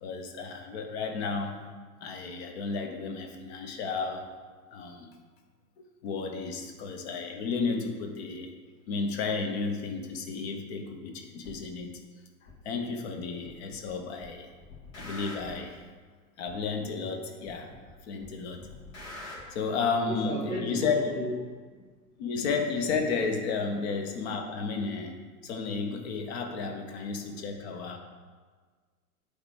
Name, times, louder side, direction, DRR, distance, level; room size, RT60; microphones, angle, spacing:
voice 1, 0.0-1.6 2.0-4.3 4.7-5.1 6.0-8.5 8.9-11.9 12.6-14.5 15.0-15.8 16.4-17.7 18.0-18.7 19.5-21.0 22.2-28.0, left 4 dB, 45° left, 4 dB, 1.0 m, -32 dB
sound 1, 11.4-11.6 12.5-12.6 13.5-13.9 14.2-15.7 16.5-16.6 17.5-17.9 18.2-19.4, left 2 dB, 60° left, 2.0 m, -44 dB
voice 2, 20.0-21.8, left 1 dB, 80° left, -4 dB, 1.1 m, -35 dB
8.3 x 3.3 x 4.9 m, 1.5 s
figure-of-eight pair, 95°, 44 cm